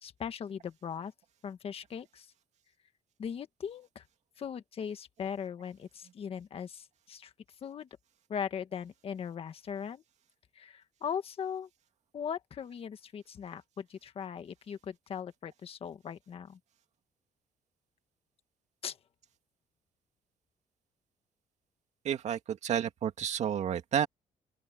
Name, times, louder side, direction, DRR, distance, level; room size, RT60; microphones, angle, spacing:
voice 1, 0.0-1.1 1.4-2.3 3.2-4.0 4.4-7.3 7.6-7.9 8.3-10.0 10.5-11.7 12.1-16.6 18.8-19.0, left 7 dB, 40° left, 1.6 m, -39 dB
voice 2, 22.0-24.1, right 9 dB, 55° right, 2.2 m, -31 dB
open air
cardioid pair, 150°, 14 cm